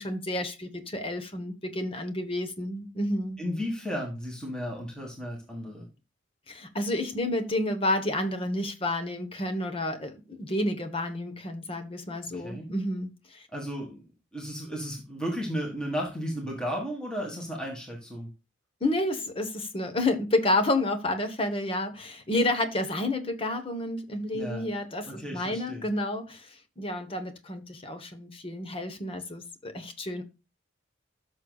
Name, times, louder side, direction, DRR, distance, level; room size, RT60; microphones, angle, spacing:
voice 1, 0.0-3.4 6.5-13.5 18.8-30.2, left 1 dB, 30° left, 1.1 m, -30 dB
voice 2, 3.4-5.9 12.3-12.7 13.5-14.0 14.3-18.3 24.3-24.7 25.1-25.8, equal, 5° left, 1.7 m, -34 dB
13.5 x 6.3 x 2.3 m
head